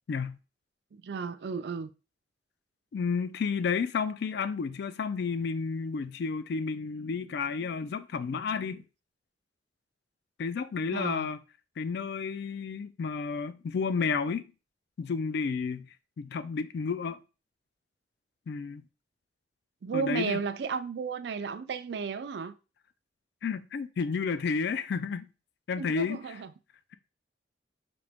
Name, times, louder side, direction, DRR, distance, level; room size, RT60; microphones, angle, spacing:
voice 1, 0.9-1.9 10.9-11.3 19.8-22.5 25.8-26.5, right 5 dB, 65° right, 0.4 m, -34 dB
voice 2, 2.9-8.8 10.4-11.4 11.8-14.5 15.0-15.9 16.2-17.2 18.5-18.8 19.9-20.4 23.4-25.3 25.7-26.4, left 5 dB, 65° left, 0.3 m, -31 dB
5.1 x 2.9 x 3.4 m
head